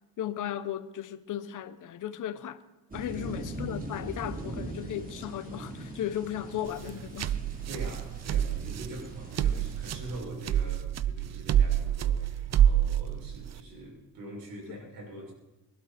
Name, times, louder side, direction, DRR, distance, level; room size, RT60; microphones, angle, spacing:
voice 1, 0.2-2.6 2.9-7.4 14.7-14.8, left 11 dB, 60° left, 1.1 m, -36 dB
sound 1, 2.9-10.2, right 1 dB, 25° right, 3.4 m, -41 dB
voice 2, 3.1-3.5 7.7-15.3, right 1 dB, 85° right, 6.6 m, -44 dB
sound 2, 6.7-13.6, right 10 dB, 50° right, 0.7 m, -27 dB
23.0 x 12.5 x 4.4 m
cardioid pair, 90°, 35 cm